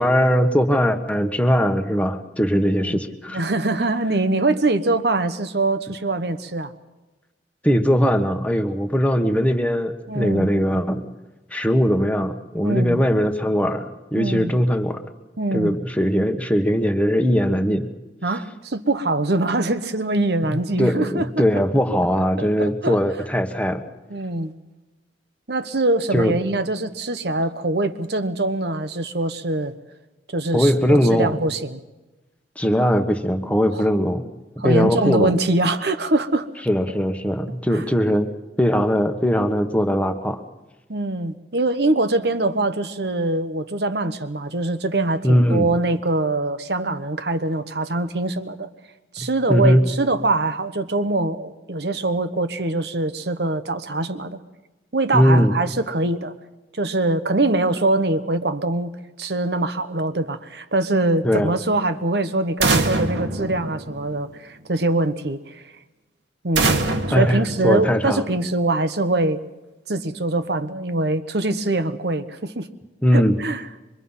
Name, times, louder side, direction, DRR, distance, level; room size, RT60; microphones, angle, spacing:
voice 1, 0.0-3.4 7.6-11.1 11.5-13.8 14.1-15.0 15.5-17.9 20.5-23.8 26.1-26.3 30.5-31.3 32.6-34.2 34.6-35.3 36.7-38.3 38.6-40.4 45.2-45.7 49.2-49.8 55.1-55.5 61.2-61.5 67.1-68.2 73.0-73.4, equal, 10° left, 6 dB, 1.3 m, -20 dB
voice 2, 3.3-6.7 10.1-10.5 12.6-13.0 14.2-14.5 15.4-15.8 18.2-21.4 22.4-23.0 24.1-24.5 25.5-29.7 30.3-31.8 33.7-33.8 34.6-36.5 37.7-37.8 40.9-48.7 49.1-54.4 54.9-56.3 56.7-58.9 59.2-65.6 66.4-66.8 67.1-69.4 69.9-72.7 73.1-73.7, right 2 dB, 65° right, 10 dB, 1.2 m, -23 dB
sound 1, 62.6-64.4 66.6-68.3, right 3 dB, 80° right, 1.8 m, -24 dB
25.0 x 23.5 x 5.7 m, 1.1 s
head